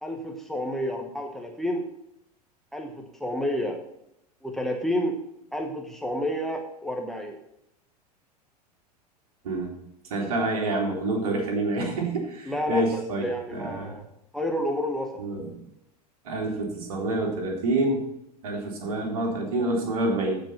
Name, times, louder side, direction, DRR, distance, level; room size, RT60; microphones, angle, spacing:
voice 1, 0.0-1.9 2.7-3.8 4.4-5.2 5.5-7.4 12.4-14.0 14.3-15.1, equal, ahead, 4 dB, 1.1 m, -30 dB
voice 2, 10.1-13.9 15.2-15.5 16.2-18.0 18.4-20.4, right 2 dB, 60° right, 1 dB, 2.7 m, -27 dB
14.0 x 5.2 x 5.6 m, 0.81 s
figure-of-eight pair, 85°, 21 cm